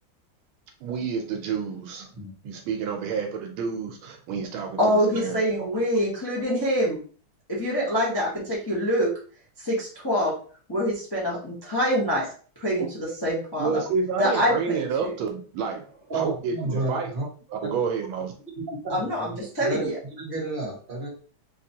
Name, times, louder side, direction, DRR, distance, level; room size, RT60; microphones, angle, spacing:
voice 1, 0.8-2.1 2.4-5.8 13.6-15.8 16.1-17.1 17.5-18.3, right 6 dB, 75° right, 4 dB, 1.3 m, -29 dB
voice 2, 4.8-7.0 7.5-9.1 9.6-10.3 10.7-12.3 12.6-13.8 14.2-15.1 18.9-20.0, equal, 20° left, -5 dB, 0.7 m, -25 dB
voice 3, 16.1-17.2 18.7-19.3 19.7-19.9 20.2-21.1, right 2 dB, 30° right, -3 dB, 1.3 m, -31 dB
3.9 x 2.6 x 2.7 m, 0.42 s
omnidirectional pair, 2.3 m